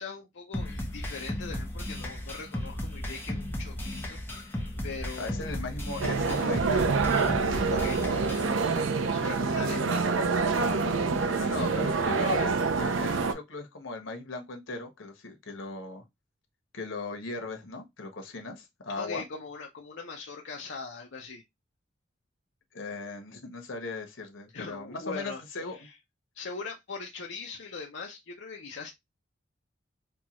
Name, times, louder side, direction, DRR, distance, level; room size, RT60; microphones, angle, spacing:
voice 1, 0.0-5.6 7.7-8.7 9.0-10.0 11.6-11.8 19.0-21.4 24.5-25.4 25.7-25.9 26.3-28.9, left 4 dB, 70° left, 0.6 m, -41 dB
sound 1, 0.5-8.5, left 1 dB, 10° left, 0.7 m, -35 dB
voice 2, 5.2-6.9 11.4-16.0 16.7-19.2 22.7-25.9, left 3 dB, 85° left, 1.2 m, -38 dB
sound 2, 6.0-13.3, right 4 dB, 85° right, 0.5 m, -26 dB
4.5 x 2.3 x 2.9 m
head